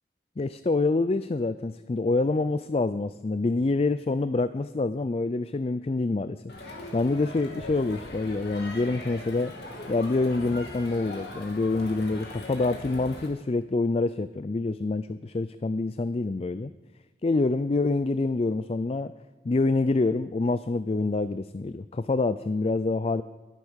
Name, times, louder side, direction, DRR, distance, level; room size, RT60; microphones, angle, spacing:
voice 1, 0.4-9.5 9.9-16.7 17.2-19.1 19.4-23.2, left 3 dB, 35° left, 13 dB, 0.4 m, -26 dB
Crowd, 6.5-13.3, left 1 dB, 70° left, 2.9 m, -40 dB
21.0 x 8.5 x 6.4 m, 1.2 s
head